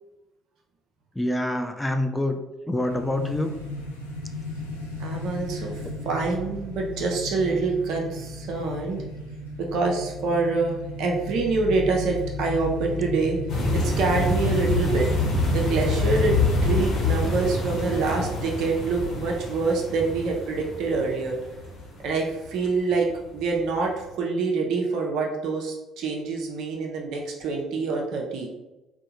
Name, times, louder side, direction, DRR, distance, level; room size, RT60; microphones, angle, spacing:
voice 1, 1.2-2.4 2.7-3.5, left 1 dB, 10° left, 6 dB, 0.4 m, -26 dB
sound 1, 2.8-17.1, left 1 dB, 90° left, 0.4 m, -34 dB
voice 2, 5.0-5.7 6.0-9.0 9.6-13.4 13.7-15.1 15.5-16.4 16.6-21.4 22.0-23.1 23.3-23.9 24.2-28.5, right 4 dB, 60° right, 0 dB, 0.5 m, -26 dB
sound 2, 13.5-22.5 23.1-23.3 23.6-23.7, left 2 dB, 55° left, 0.9 m, -26 dB
3.4 x 2.1 x 2.8 m, 1.0 s
figure-of-eight pair, 50°, 0 cm